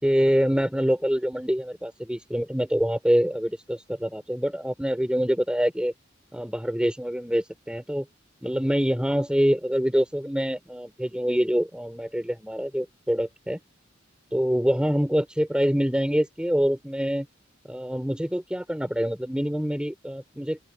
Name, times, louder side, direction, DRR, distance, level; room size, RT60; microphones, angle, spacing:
voice 1, 0.0-5.9 6.3-8.1 8.4-13.6 14.3-17.3 17.7-20.6, equal, 5° right, 4.2 m, -25 dB
open air
head